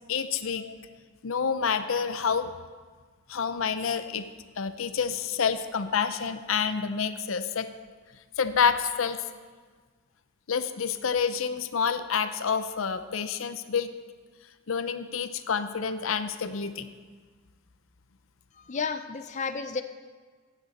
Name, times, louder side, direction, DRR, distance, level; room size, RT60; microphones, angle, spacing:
voice 1, 0.1-0.8 1.2-2.5 3.3-4.3 4.6-7.7 8.4-9.2 10.5-13.9 14.7-16.9, left 6 dB, 80° left, 11 dB, 0.6 m, -28 dB
voice 2, 18.5-19.8, left 5 dB, 35° left, 9 dB, 0.5 m, -32 dB
14.5 x 9.3 x 4.2 m, 1.5 s
head